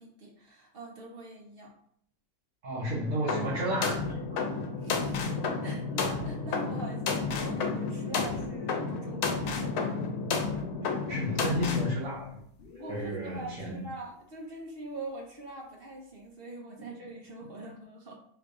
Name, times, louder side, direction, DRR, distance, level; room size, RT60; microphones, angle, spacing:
voice 1, 0.0-1.7 4.8-5.2 5.6-10.1 12.8-18.1, right 2 dB, 45° right, 0 dB, 0.9 m, -43 dB
voice 2, 2.6-4.2 10.8-12.4 12.9-13.8, equal, 65° right, -8 dB, 1.5 m, -32 dB
sound 1, 3.3-11.9, left 4 dB, 85° left, 1.2 m, -31 dB
sound 2, 11.1-13.3, left 5 dB, 55° left, 0.7 m, -40 dB
3.7 x 2.6 x 4.7 m, 0.68 s
omnidirectional pair, 1.6 m